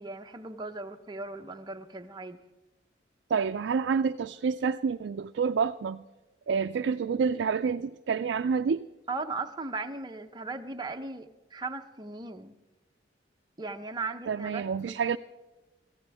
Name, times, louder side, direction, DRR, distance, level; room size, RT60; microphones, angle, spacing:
voice 1, 0.0-2.4 9.1-12.5 13.6-15.0, right 3 dB, 25° right, 0.8 m, -37 dB
voice 2, 3.3-6.0 6.5-8.9 14.3-15.2, right 6 dB, 75° right, 0.4 m, -28 dB
22.5 x 15.0 x 3.5 m
head